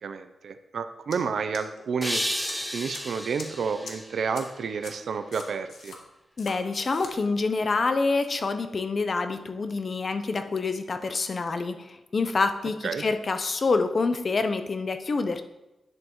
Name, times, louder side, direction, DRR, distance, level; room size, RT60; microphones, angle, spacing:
voice 1, 0.0-2.2 2.5-6.0 12.8-13.0, right 5 dB, 75° right, 9 dB, 0.5 m, -30 dB
sound 1, 1.1-1.2 1.5-2.1 2.5-2.6 2.9-3.0 3.4-3.5 3.9-4.0 4.4-4.5 4.8-4.9 5.3-6.0 6.4-6.5 6.8-7.1, left 4 dB, 85° left, 1.3 m, -41 dB
sound 2, 2.0-5.2, equal, 5° left, 0.6 m, -33 dB
voice 2, 6.4-15.4, left 3 dB, 45° left, 9 dB, 0.7 m, -27 dB
10.5 x 7.7 x 3.1 m, 0.98 s
wide cardioid pair, 115°, 0 cm